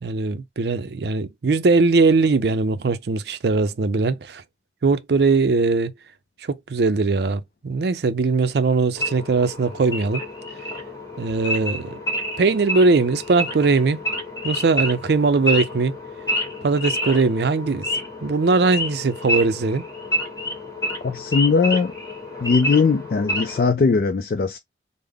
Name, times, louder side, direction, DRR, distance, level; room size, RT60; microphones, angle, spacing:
voice 1, 0.0-4.4 4.8-5.9 6.4-10.2 11.2-12.0 12.4-14.0 14.4-16.0 16.6-17.9 18.2-19.8, right 3 dB, 70° right, 0.5 m, -20 dB
Wild animals / Idling, 9.0-23.7, left 1 dB, 20° left, 1.1 m, -29 dB
voice 2, 21.0-21.9 22.4-24.6, left 4 dB, 55° left, 0.3 m, -19 dB
3.5 x 2.0 x 3.5 m
head